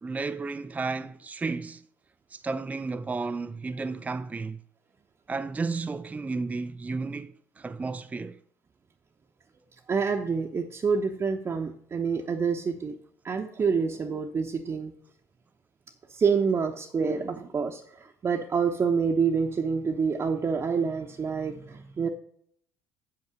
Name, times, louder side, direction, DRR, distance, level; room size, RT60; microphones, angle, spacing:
voice 1, 0.0-1.8 2.3-4.6 5.3-8.4, right 4 dB, 20° right, 0.5 m, -33 dB
voice 2, 9.9-13.0 13.2-14.9 16.1-22.1, right 5 dB, 35° right, 1.0 m, -27 dB
8.1 x 5.8 x 6.4 m
hypercardioid pair, 60°, 8 cm